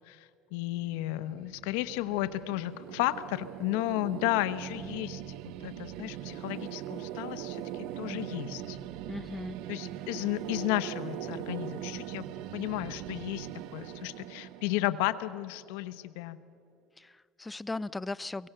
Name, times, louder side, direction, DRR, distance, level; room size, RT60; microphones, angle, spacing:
voice 1, 0.1-5.2 5.6-8.8 9.7-12.2 12.5-16.4, left 16 dB, 90° left, 13 dB, 0.8 m, -33 dB
sound 1, 0.8-15.8, right 12 dB, 75° right, 0.8 m, -41 dB
voice 2, 9.1-9.6 17.0-18.5, left 2 dB, 10° left, 19 dB, 0.4 m, -37 dB
23.0 x 17.5 x 6.7 m, 2.4 s
cardioid pair, 125°, 0 cm